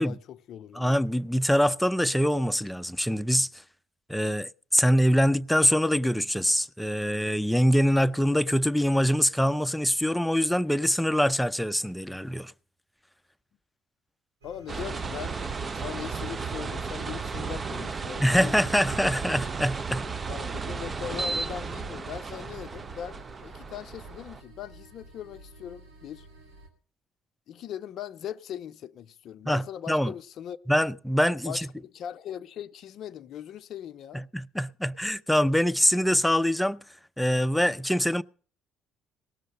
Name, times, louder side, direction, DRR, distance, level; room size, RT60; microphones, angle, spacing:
voice 1, 0.0-0.8 14.4-15.4 15.7-18.5 20.3-26.3 27.5-30.6 31.4-34.3, left 9 dB, 60° left, 0.5 m, -40 dB
voice 2, 0.7-3.6 4.1-12.5 18.2-20.0 29.5-30.1 30.7-31.7 34.1-36.8 37.2-38.2, equal, 5° left, 0.6 m, -24 dB
sound 1, 14.4-26.7, right 1 dB, 90° right, 2.7 m, -52 dB
sound 2, 14.7-24.4, right 4 dB, 35° right, 0.7 m, -34 dB
18.0 x 6.5 x 7.6 m
hypercardioid pair, 60°, 0 cm